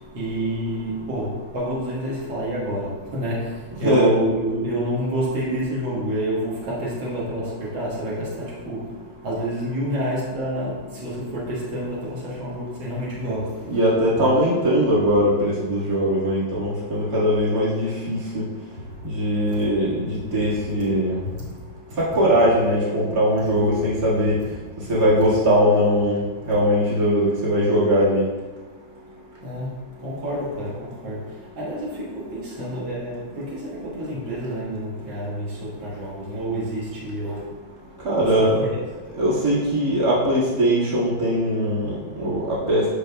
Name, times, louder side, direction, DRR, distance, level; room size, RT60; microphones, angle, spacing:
voice 1, 0.1-8.9 9.2-13.8 14.2-14.3 19.5-19.6 29.4-37.6 38.2-38.8 42.2-42.4, right 1 dB, 85° right, -6 dB, 2.2 m, -28 dB
voice 2, 13.7-18.4 19.0-21.2 22.0-24.3 24.9-26.2 26.5-28.2 38.0-38.7 39.1-42.9, equal, 50° right, -8 dB, 2.4 m, -20 dB
9.7 x 5.6 x 2.3 m, 1.3 s
omnidirectional pair, 1.9 m